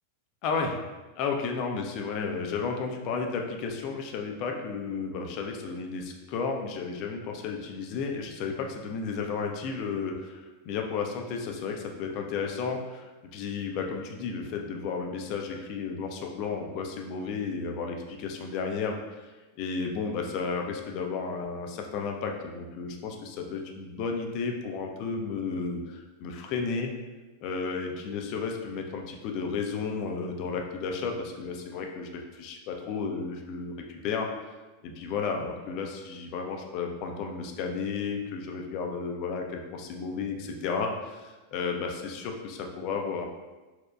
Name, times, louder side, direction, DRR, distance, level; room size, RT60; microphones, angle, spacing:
voice 1, 0.4-0.8 1.2-19.2 19.6-26.9 27.4-34.3 34.8-43.2, left 5 dB, 40° left, 2 dB, 0.4 m, -33 dB
4.2 x 2.1 x 2.3 m, 1.2 s
figure-of-eight pair, 90°, 0 cm